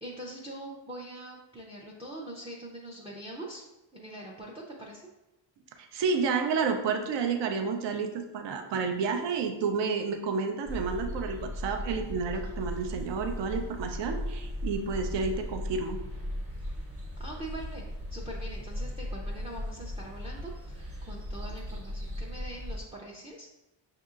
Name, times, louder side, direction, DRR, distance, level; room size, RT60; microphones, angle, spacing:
voice 1, 0.0-3.6 3.9-5.0 17.2-17.8 18.1-23.5, right 1 dB, 15° right, -3 dB, 0.4 m, -43 dB
voice 2, 5.8-16.0, right 5 dB, 65° right, 5 dB, 0.6 m, -30 dB
sound 1, 10.7-22.8, equal, 30° right, 0.9 m, -37 dB
6.3 x 2.8 x 2.4 m, 0.97 s
wide cardioid pair, 125°, 46 cm